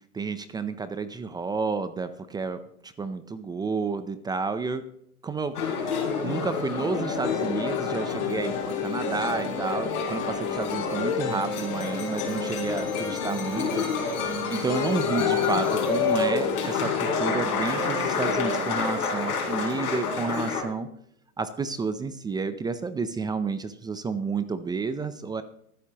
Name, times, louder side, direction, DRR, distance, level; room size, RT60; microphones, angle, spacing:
voice 1, 0.1-4.8 5.2-5.6 6.2-13.8 14.5-20.9 21.4-25.4, right 4 dB, 10° right, 11 dB, 0.5 m, -31 dB
sound 1, 5.5-20.6, left 4 dB, 85° left, 4.6 m, -29 dB
sound 2, 7.2-18.7, left 6 dB, 50° left, 4.3 m, -32 dB
23.5 x 8.3 x 2.9 m, 0.72 s
hypercardioid pair, 125°, 44 cm